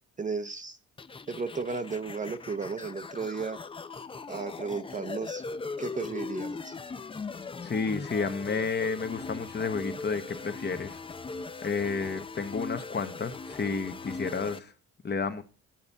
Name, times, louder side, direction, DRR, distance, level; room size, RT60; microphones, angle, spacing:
voice 1, 0.2-0.8 1.3-3.6 4.3-5.4 5.8-6.7, right 4 dB, 25° right, 0.7 m, -34 dB
sound 1, 1.0-14.6, left 4 dB, 20° left, 0.5 m, -39 dB
voice 2, 7.6-10.9 11.6-14.6 15.0-15.4, left 4 dB, 35° left, 1.1 m, -31 dB
8.9 x 4.1 x 7.1 m
cardioid pair, 90°, 30 cm